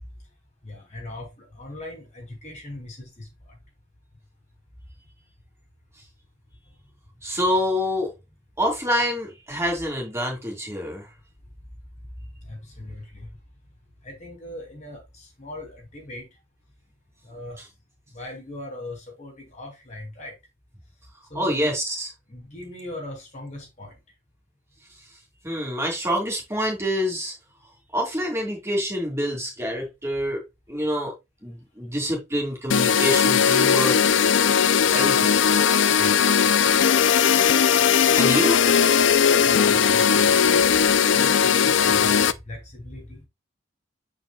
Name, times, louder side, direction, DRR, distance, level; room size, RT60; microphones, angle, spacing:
voice 1, 0.6-3.3 12.4-13.3 14.0-16.2 17.2-17.6 18.1-20.4 21.3-21.7 22.3-23.9 30.8-30.9 36.0-36.5 39.4-43.2, left 1 dB, 35° left, 2.8 m, -39 dB
voice 2, 7.2-8.1 8.6-11.1 21.3-22.1 25.4-27.3 27.9-31.1 31.4-34.3 34.9-35.3 38.1-39.3, equal, 15° right, 2.6 m, -27 dB
sound 1, 32.7-42.3, left 7 dB, 75° left, 0.5 m, -18 dB
8.3 x 5.2 x 2.3 m
head